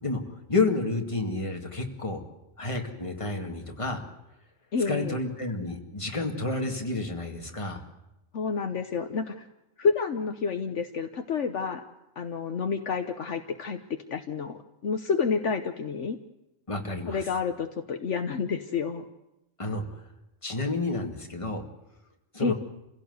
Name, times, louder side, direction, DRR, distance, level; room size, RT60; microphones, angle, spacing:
voice 1, 0.0-2.2 2.6-4.0 4.9-7.8 16.7-17.2 19.6-19.8 20.4-21.6 22.3-22.5, left 3 dB, 25° left, 2 dB, 2.2 m, -30 dB
voice 2, 4.7-5.2 8.3-9.5 9.8-11.8 12.2-16.2 17.1-19.1 22.4-22.5, left 5 dB, 65° left, 7 dB, 1.3 m, -29 dB
27.5 x 16.5 x 8.0 m, 0.94 s
omnidirectional pair, 1.4 m